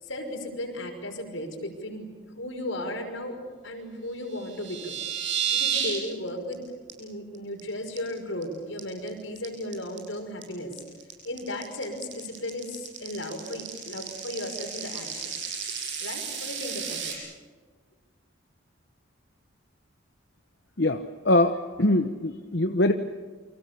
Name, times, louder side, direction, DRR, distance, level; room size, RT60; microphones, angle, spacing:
voice 1, 0.0-2.1 2.4-3.4 3.6-5.0 5.5-6.6 7.0-10.7 11.2-15.3 16.0-17.1, left 1 dB, 75° left, 4 dB, 5.8 m, -35 dB
sound 1, 4.3-6.0 6.3-6.5 6.9-7.0 7.3-7.6 8.0-8.4 8.8-17.1, right 8 dB, 65° right, 7.7 m, -32 dB
voice 2, 20.8-22.9, left 1 dB, 55° left, 7 dB, 1.0 m, -23 dB
29.0 x 25.5 x 7.1 m, 1.5 s
head